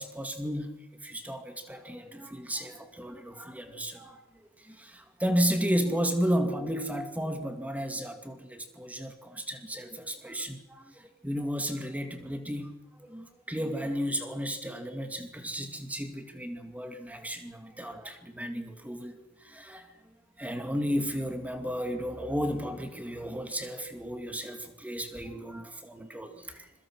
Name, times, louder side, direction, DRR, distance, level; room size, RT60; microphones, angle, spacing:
voice 1, 0.0-4.2 4.6-26.7, equal, 5° right, 6 dB, 2.3 m, -33 dB
26.0 x 22.5 x 6.2 m, 0.97 s
head